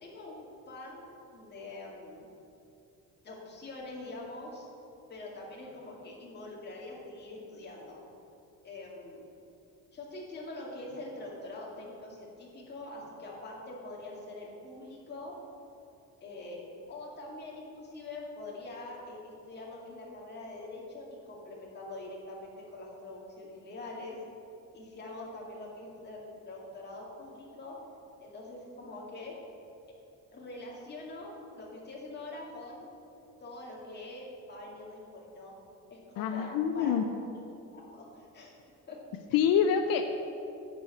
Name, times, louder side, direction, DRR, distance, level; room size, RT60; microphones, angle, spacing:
voice 1, 0.0-2.3 3.2-4.7 5.1-8.0 8.6-9.2 9.9-15.4 16.2-16.6 16.9-24.2 24.7-27.8 28.2-29.4 30.3-32.9 33.4-35.5 35.9-36.5 36.7-37.1 37.7-38.5 38.9-39.0, left 2 dB, 30° left, -3 dB, 2.1 m, -44 dB
voice 2, 36.2-37.0 39.3-40.0, left 8 dB, 80° left, 7 dB, 0.6 m, -26 dB
10.5 x 4.9 x 7.8 m, 2.6 s
cardioid pair, 155°, 33 cm